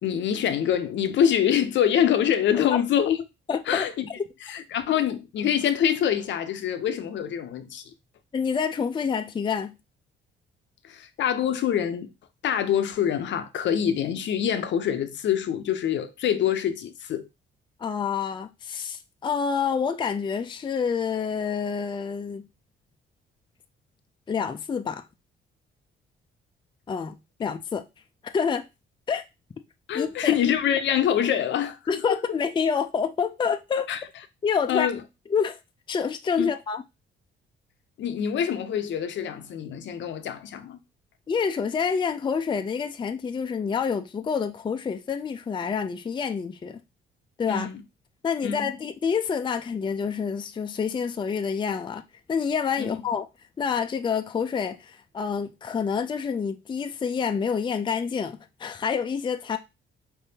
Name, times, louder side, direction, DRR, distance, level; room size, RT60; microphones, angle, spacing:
voice 1, 0.0-3.2 3.7-4.1 4.5-7.8 10.8-12.1 12.4-17.3 29.9-31.8 32.1-32.2 33.9-34.0 34.7-35.0 36.4-36.5 38.0-40.8 47.5-47.8 48.4-48.7 52.8-53.0, left 9 dB, 65° left, 0.6 m, -25 dB
voice 2, 3.5-3.8 4.2-4.3 8.3-9.8 17.8-22.5 24.3-25.0 26.9-27.8 28.2-28.7 29.1-29.2 29.9-30.3 31.9-33.9 34.4-34.9 35.3-35.6 35.9-36.8 41.3-46.8 47.4-47.7 48.2-52.0 52.3-53.3 53.6-59.6, left 6 dB, 25° left, 0.4 m, -27 dB
4.5 x 3.4 x 2.7 m
cardioid pair, 90°, 20 cm